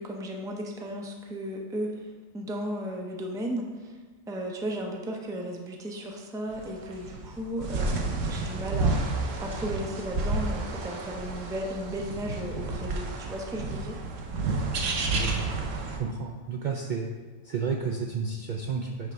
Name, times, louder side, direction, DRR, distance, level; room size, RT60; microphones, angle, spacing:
voice 1, 0.0-4.0 4.3-9.1 9.4-14.0, equal, 5° right, 1 dB, 0.4 m, -35 dB
sound 1, 6.5-16.0, right 3 dB, 75° right, 1.1 m, -31 dB
voice 2, 15.1-15.6 16.0-17.1 17.4-19.1, right 5 dB, 55° right, 0 dB, 0.5 m, -32 dB
8.1 x 3.3 x 5.2 m, 1.4 s
omnidirectional pair, 1.3 m